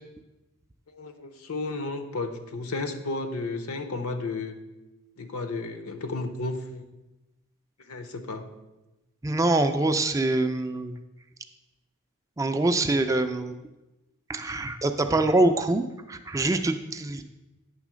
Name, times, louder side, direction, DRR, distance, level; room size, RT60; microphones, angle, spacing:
voice 1, 0.9-4.6 5.2-6.9 7.8-8.5, left 3 dB, 80° left, 7 dB, 0.8 m, -33 dB
voice 2, 9.2-11.0 12.4-13.6 14.3-17.2, right 2 dB, 15° right, 8 dB, 0.3 m, -24 dB
9.0 x 3.7 x 6.2 m, 1.0 s
head